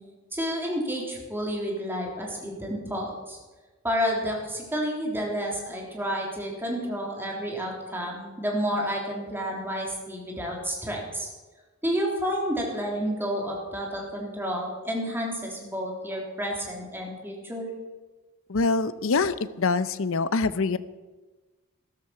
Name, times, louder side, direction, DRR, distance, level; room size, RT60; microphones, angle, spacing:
voice 1, 0.3-3.4 3.8-11.3 11.8-17.7, equal, 10° right, -1 dB, 3.4 m, -30 dB
voice 2, 18.5-20.8, left 4 dB, 65° left, 15 dB, 0.7 m, -25 dB
13.5 x 13.0 x 5.8 m, 1.2 s
head